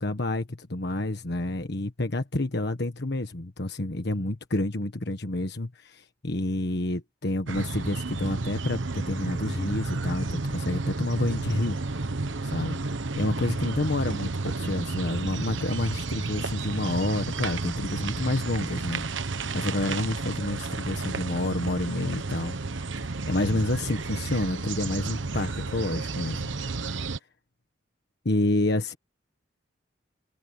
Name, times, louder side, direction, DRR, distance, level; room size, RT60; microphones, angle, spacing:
voice 1, 0.0-11.8 12.4-12.8 13.2-22.5 23.3-26.5 28.2-29.0, left 1 dB, 60° left, 1.5 m, -29 dB
sound 1, 7.5-27.2, right 3 dB, 85° right, 1.1 m, -32 dB
open air
head